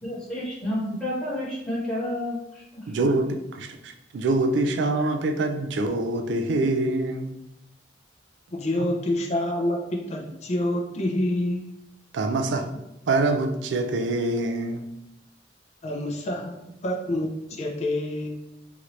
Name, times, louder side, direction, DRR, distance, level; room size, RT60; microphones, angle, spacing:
voice 1, 0.0-2.9, left 1 dB, 5° left, -11 dB, 1.1 m, -30 dB
voice 2, 2.9-7.3 12.1-12.7 13.1-14.8, right 2 dB, 70° right, 7 dB, 0.4 m, -25 dB
voice 3, 8.5-11.6 15.8-16.5 16.8-18.3, left 1 dB, 35° left, 0 dB, 0.4 m, -27 dB
2.9 x 2.5 x 3.0 m, 0.86 s
head